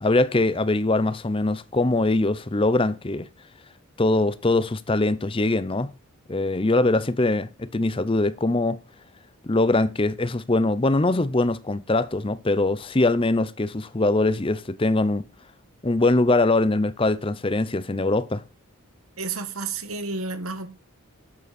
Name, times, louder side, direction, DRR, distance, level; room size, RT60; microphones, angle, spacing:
voice 1, 0.0-3.3 4.0-5.9 6.3-8.8 9.4-15.2 15.8-18.4, left 2 dB, 25° left, 0.6 m, -22 dB
voice 2, 19.2-20.7, right 4 dB, 75° right, 1.5 m, -31 dB
11.0 x 7.8 x 4.2 m
head